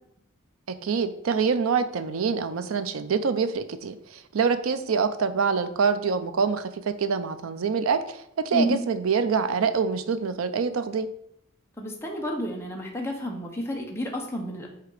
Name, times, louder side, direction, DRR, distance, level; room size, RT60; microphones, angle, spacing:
voice 1, 0.7-11.1, right 5 dB, 85° right, 11 dB, 0.5 m, -25 dB
voice 2, 8.5-8.8 11.8-14.7, equal, 15° left, -1 dB, 1.0 m, -30 dB
8.1 x 2.9 x 4.9 m, 0.76 s
head